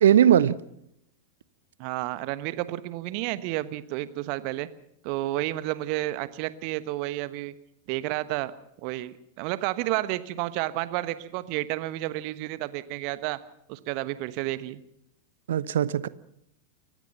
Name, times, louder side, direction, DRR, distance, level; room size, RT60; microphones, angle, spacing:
voice 1, 0.0-0.6 15.5-16.1, right 10 dB, 60° right, 0.8 m, -19 dB
voice 2, 1.8-4.7 5.0-7.5 7.9-8.5 8.8-13.4 13.7-14.8, right 17 dB, 45° right, 1.2 m, -31 dB
29.5 x 16.0 x 5.7 m
figure-of-eight pair, 90°, 0 cm